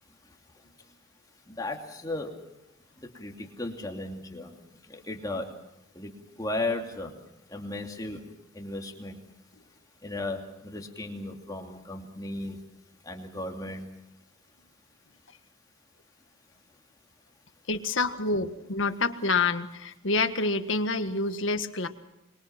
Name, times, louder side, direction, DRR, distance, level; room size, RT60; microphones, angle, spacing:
voice 1, 1.5-2.3 3.2-4.5 4.9-5.5 6.0-6.1 6.4-7.1 7.5-8.2 8.5-9.2 10.0-12.6 13.0-13.9, left 2 dB, 20° left, 2 dB, 2.7 m, -35 dB
voice 2, 17.7-21.9, left 3 dB, 75° left, 8 dB, 1.6 m, -27 dB
26.0 x 23.0 x 6.0 m, 0.85 s
head